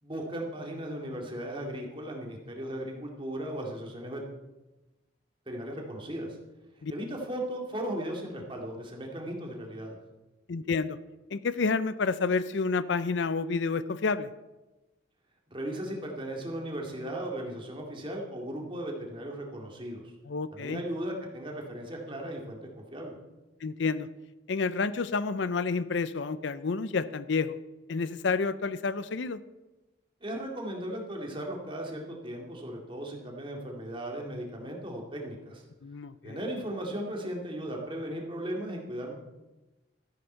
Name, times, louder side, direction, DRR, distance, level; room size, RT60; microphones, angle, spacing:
voice 1, 0.0-4.2 5.5-6.4 6.9-10.0 15.5-20.1 20.5-22.6 22.9-23.1 30.2-35.6 36.2-39.1, right 1 dB, 25° right, 0 dB, 2.3 m, -36 dB
voice 2, 10.5-11.0 11.3-14.3 20.3-20.8 23.6-24.1 24.5-27.6 27.9-29.4 35.8-36.4, left 4 dB, 65° left, 15 dB, 0.5 m, -29 dB
13.5 x 10.5 x 4.5 m, 1.1 s
head